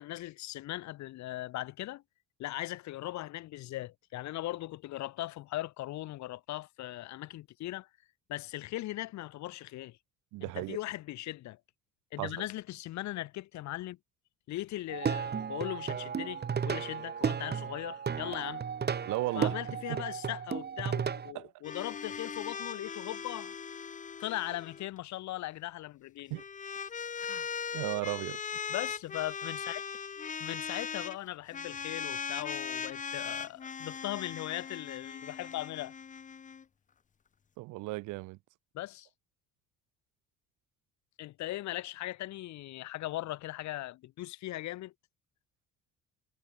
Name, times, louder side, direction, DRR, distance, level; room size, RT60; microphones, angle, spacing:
voice 1, 0.0-2.0 2.4-7.9 8.3-10.0 10.4-11.6 12.1-14.0 14.5-18.6 19.3-23.6 24.2-26.4 27.2-27.5 28.7-29.8 30.4-35.9 38.7-39.1 41.2-44.9, left 16 dB, 70° left, 1.0 m, -39 dB
voice 2, 10.3-10.8 12.2-12.4 19.1-19.5 19.9-20.0 21.3-21.5 26.3-26.4 27.7-28.4 37.6-38.4, right 21 dB, 85° right, 1.2 m, -35 dB
Plucked string instrument, 14.9-21.3, right 7 dB, 35° right, 1.3 m, -34 dB
sound 1, 21.6-24.9 26.2-31.2 31.5-36.6, left 6 dB, 25° left, 0.7 m, -39 dB
supercardioid pair, 85°, 30 cm